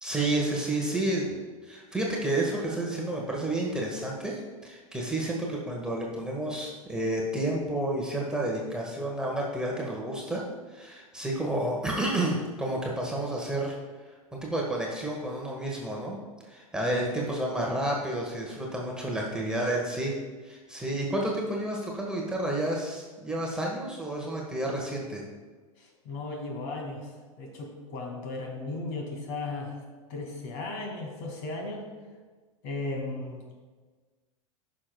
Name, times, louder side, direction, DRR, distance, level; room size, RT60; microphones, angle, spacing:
voice 1, 0.0-10.4 10.7-13.7 14.3-16.2 16.5-20.1 20.4-25.2, right 1 dB, 5° right, -2 dB, 1.4 m, -30 dB
voice 2, 25.8-27.1 27.4-29.8 30.1-31.8 32.6-33.5, left 3 dB, 50° left, 1 dB, 2.1 m, -36 dB
14.5 x 6.2 x 2.3 m, 1.4 s
figure-of-eight pair, 90°, 18 cm